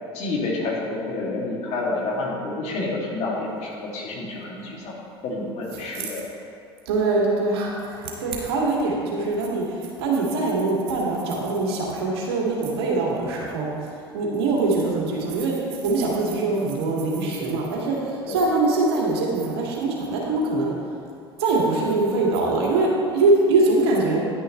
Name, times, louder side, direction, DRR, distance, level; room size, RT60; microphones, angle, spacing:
voice 1, 0.1-5.0 5.2-6.2 18.3-18.4, left 2 dB, 50° left, -3 dB, 2.5 m, -29 dB
voice 2, 6.9-13.7 14.1-15.5 15.8-20.7 21.4-24.2, right 3 dB, 70° right, -3 dB, 2.1 m, -23 dB
10.5 x 10.0 x 3.2 m, 2.5 s
figure-of-eight pair, 70°, 14 cm